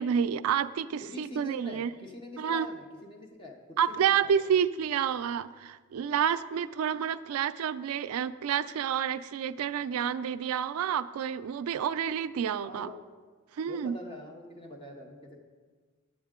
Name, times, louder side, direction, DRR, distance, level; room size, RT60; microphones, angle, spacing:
voice 1, 0.0-1.9 2.4-2.7 3.8-12.9 13.6-14.0, right 8 dB, 80° right, 14 dB, 0.3 m, -29 dB
voice 2, 1.0-4.3 12.6-13.0 13.7-15.4, left 1 dB, 25° left, 1 dB, 0.6 m, -45 dB
9.4 x 7.2 x 3.6 m, 1.4 s
head